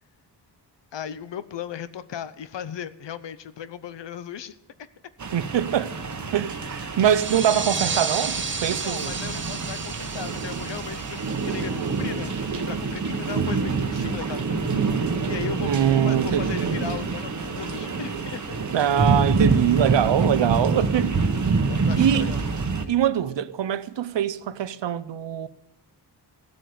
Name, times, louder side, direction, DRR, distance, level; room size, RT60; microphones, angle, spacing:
voice 1, 0.9-4.5 8.7-18.6 21.7-22.4, left 9 dB, 85° left, 0.8 m, -37 dB
sound 1, 5.2-22.8, right 4 dB, 45° right, 1.1 m, -26 dB
voice 2, 5.3-6.0 6.3-9.2 11.7-12.0 15.6-16.6 18.7-21.1 22.0-22.4 22.9-25.5, right 10 dB, 85° right, 0.7 m, -23 dB
sound 2, 7.0-12.3, right 4 dB, 30° right, 0.8 m, -32 dB
15.0 x 7.8 x 6.8 m
wide cardioid pair, 135°, 42 cm